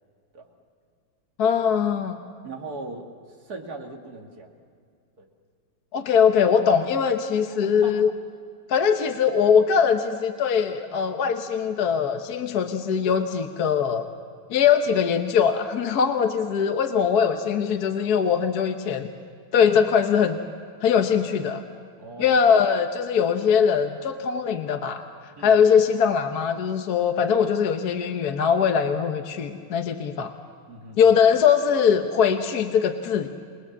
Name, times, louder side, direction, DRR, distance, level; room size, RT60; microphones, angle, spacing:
voice 1, 1.4-2.2 5.9-8.1 8.7-14.1 14.5-19.1 19.5-20.4 20.8-21.6 22.2-25.0 25.4-30.3 31.0-33.3, left 7 dB, 55° left, 6 dB, 1.3 m, -21 dB
voice 2, 2.4-3.1 3.4-4.5 5.2-5.3 7.5-8.0 22.0-22.5 25.4-25.6 30.7-31.0, right 3 dB, 45° right, 1 dB, 2.8 m, -39 dB
28.0 x 21.0 x 7.3 m, 2.2 s
omnidirectional pair, 2.3 m